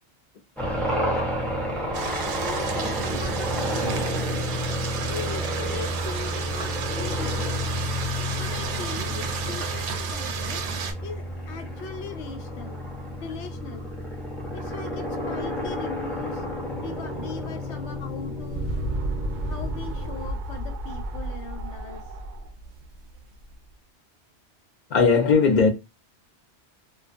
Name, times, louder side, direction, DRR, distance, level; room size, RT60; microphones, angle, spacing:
sound 1, 0.6-20.3, equal, ahead, 0.4 m, -31 dB
voice 1, 0.9-1.3 2.3-4.5 5.1-7.6 8.3-10.6 11.0-12.8 13.2-13.8 14.5-16.4 16.8-18.7 19.4-22.0, left 5 dB, 80° left, 0.9 m, -39 dB
sound 2, 1.9-10.9, right 6 dB, 85° right, 0.9 m, -32 dB
sound 3, 18.0-23.6, right 2 dB, 60° right, 0.5 m, -32 dB
voice 2, 24.9-25.7, left 5 dB, 50° left, 0.6 m, -18 dB
2.3 x 2.3 x 2.4 m
omnidirectional pair, 1.2 m